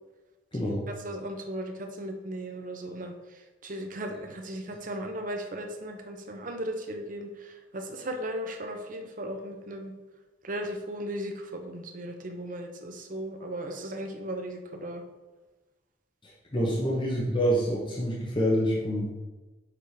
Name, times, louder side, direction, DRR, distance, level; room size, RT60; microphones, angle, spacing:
voice 1, 0.5-0.8 16.2-19.1, equal, 30° left, -4 dB, 1.0 m, -27 dB
voice 2, 1.0-3.1 3.6-9.9 10.4-15.0 16.6-16.7, right 1 dB, 50° right, 4 dB, 0.8 m, -36 dB
6.8 x 3.6 x 4.9 m, 1.2 s
head